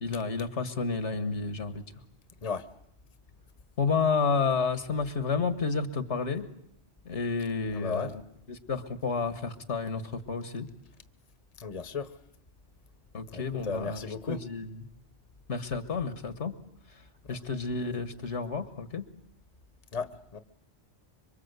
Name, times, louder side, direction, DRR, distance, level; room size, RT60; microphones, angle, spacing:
voice 1, 0.0-1.8 3.8-6.5 7.1-8.2 8.5-10.7 13.1-14.8 15.5-16.5 17.3-19.0, left 4 dB, 75° left, 10 dB, 1.9 m, -30 dB
voice 2, 7.7-8.1 11.6-12.1 13.3-14.4 19.9-20.4, left 5 dB, 35° left, 12 dB, 1.2 m, -35 dB
26.0 x 24.5 x 8.2 m, 0.73 s
omnidirectional pair, 1.2 m